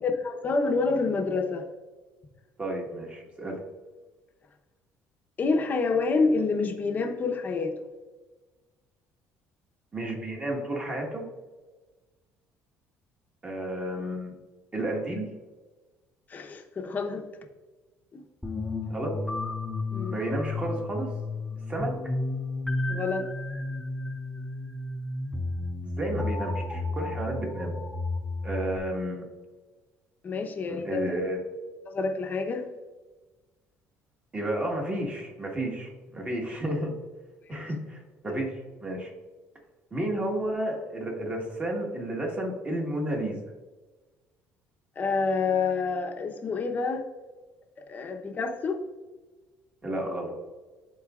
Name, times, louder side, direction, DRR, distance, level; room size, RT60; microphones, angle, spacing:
voice 1, 0.0-1.7 5.4-7.7 16.3-17.3 18.1-18.2 19.9-20.2 22.9-23.3 30.2-31.0 31.9-32.7 37.5-37.6 38.3-38.4 45.0-47.0 47.9-48.8, left 4 dB, 30° left, 4 dB, 0.8 m, -28 dB
voice 2, 2.6-3.6 9.9-11.2 13.4-14.3 14.7-15.3 18.9-19.1 20.1-21.1 21.7-22.1 26.0-27.7 28.4-29.2 30.7-31.4 34.3-36.9 37.5-39.1 39.9-43.4 49.8-50.3, right 1 dB, 20° right, 0 dB, 1.6 m, -32 dB
sound 1, 18.4-28.8, left 2 dB, 5° left, 0.5 m, -32 dB
11.5 x 4.0 x 2.4 m, 1.3 s
cardioid pair, 130°, 6 cm